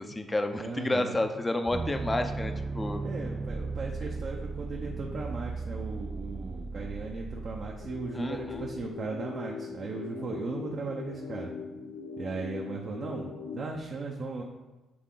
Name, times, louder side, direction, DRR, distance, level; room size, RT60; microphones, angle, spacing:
voice 1, 0.0-3.0 8.1-8.7, left 2 dB, 20° left, 7 dB, 0.6 m, -30 dB
voice 2, 0.6-1.3 3.0-11.5 12.2-14.4, right 3 dB, 50° right, -1 dB, 0.7 m, -37 dB
sound 1, 1.7-8.9, right 3 dB, 25° right, 0.3 m, -36 dB
sound 2, 7.8-13.8, left 5 dB, 75° left, 0.7 m, -40 dB
7.8 x 3.6 x 3.8 m, 1.2 s
cardioid pair, 90°, 0 cm